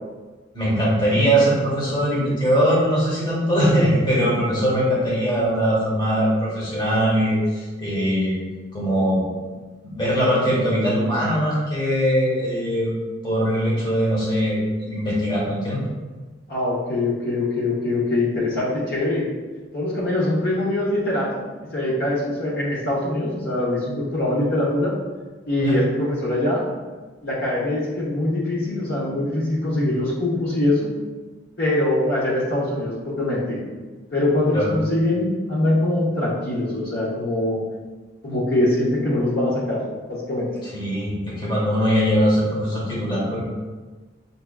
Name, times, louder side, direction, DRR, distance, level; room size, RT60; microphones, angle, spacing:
voice 1, 0.5-8.3 8.7-9.2 9.8-12.9 13.2-15.8 25.6-25.8 34.5-34.7 40.7-43.4, equal, 25° left, -5 dB, 1.0 m, -21 dB
voice 2, 16.5-19.2 19.7-21.4 21.7-24.9 25.5-26.6 27.2-30.9 31.6-33.6 34.1-37.6 38.2-39.8 40.1-40.5, left 1 dB, 55° left, -6 dB, 0.7 m, -23 dB
5.4 x 2.3 x 2.2 m, 1.3 s
head